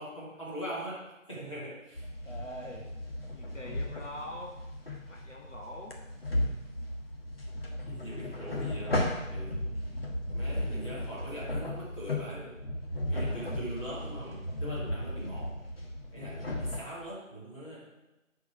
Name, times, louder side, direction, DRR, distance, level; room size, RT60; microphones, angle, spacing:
voice 1, 0.0-2.0 7.9-9.6 10.3-12.5 13.1-15.6 16.1-17.9, equal, 25° left, -8 dB, 2.5 m, -41 dB
sound 1, 1.9-16.8, left 1 dB, 45° left, 1.2 m, -35 dB
voice 2, 2.2-2.9 3.3-4.6 5.0-6.0 13.2-13.5 14.8-15.1, left 1 dB, 65° left, -1 dB, 1.5 m, -44 dB
11.0 x 4.8 x 4.7 m, 0.99 s
figure-of-eight pair, 170°, 40 cm